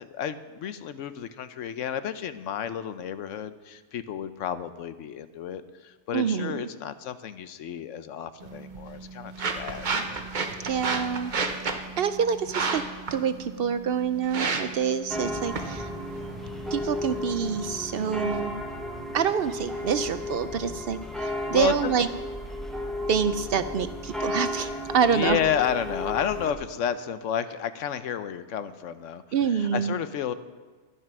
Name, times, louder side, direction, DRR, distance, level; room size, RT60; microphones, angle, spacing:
voice 1, 0.0-9.9 21.4-21.9 25.0-29.2 29.5-30.3, left 8 dB, 85° left, 12 dB, 1.1 m, -31 dB
voice 2, 6.1-6.7 10.6-11.3 11.7-12.8 13.1-15.9 16.7-18.5 19.1-22.1 23.1-25.4 29.3-29.9, right 7 dB, 60° right, 12 dB, 0.7 m, -27 dB
sound 1, 8.4-18.4, right 4 dB, 40° right, 1.0 m, -33 dB
sound 2, 15.1-26.5, left 1 dB, ahead, 1.3 m, -34 dB
11.5 x 11.0 x 6.0 m, 1.3 s
omnidirectional pair, 1.3 m